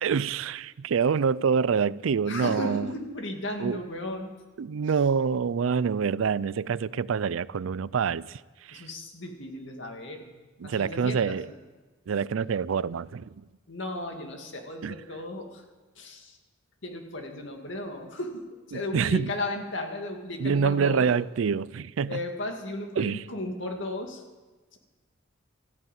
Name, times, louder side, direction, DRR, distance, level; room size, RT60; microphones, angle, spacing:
voice 1, 0.0-2.9 3.6-3.8 4.6-8.4 8.7-8.9 10.6-11.5 12.1-13.3 14.8-15.0 18.7-19.3 20.4-22.2 23.0-23.3, right 6 dB, 85° right, 0.4 m, -26 dB
voice 2, 2.2-4.3 8.7-10.3 10.6-11.6 13.7-15.6 16.0-16.4 16.8-21.1 22.1-24.2 24.7-24.8, left 1 dB, 70° left, 2.1 m, -35 dB
14.0 x 9.5 x 9.2 m
head